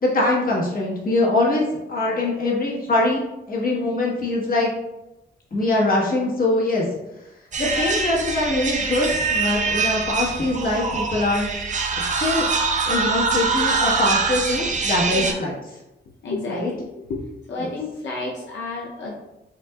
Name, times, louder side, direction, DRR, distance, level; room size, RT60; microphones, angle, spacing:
voice 1, 0.0-4.7 5.5-6.8 7.6-11.5 12.2-12.5 12.8-15.6 16.5-16.7 17.6-17.7, left 2 dB, 50° left, -3 dB, 1.3 m, -23 dB
sound 1, 7.5-15.3, right 4 dB, 40° right, 0.5 m, -24 dB
voice 2, 15.1-15.4 16.2-17.2 17.5-19.1, left 2 dB, 85° left, -3 dB, 0.6 m, -31 dB
6.1 x 2.4 x 2.3 m, 0.96 s
wide cardioid pair, 110°, 19 cm